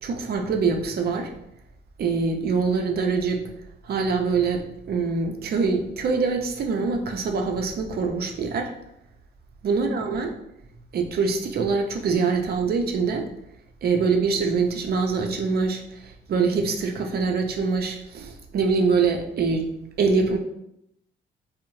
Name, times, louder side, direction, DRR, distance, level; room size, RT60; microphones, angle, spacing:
voice 1, 0.0-1.3 2.0-3.4 3.8-8.7 9.6-10.3 10.9-13.3 13.8-19.6 20.0-20.4, right 4 dB, 55° right, 3 dB, 0.5 m, -24 dB
2.6 x 2.0 x 3.0 m, 0.78 s
cardioid pair, 90°, 20 cm